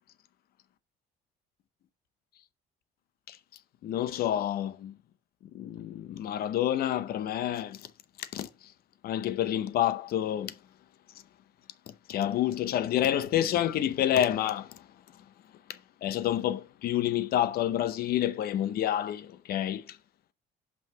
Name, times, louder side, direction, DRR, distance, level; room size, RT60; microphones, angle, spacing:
voice 1, 3.8-4.9 5.5-7.8 8.2-8.5 9.0-10.5 12.1-14.8 16.0-20.0, left 11 dB, 65° left, 0.7 m, -28 dB
5.6 x 5.4 x 5.5 m
cardioid pair, 110°, 17 cm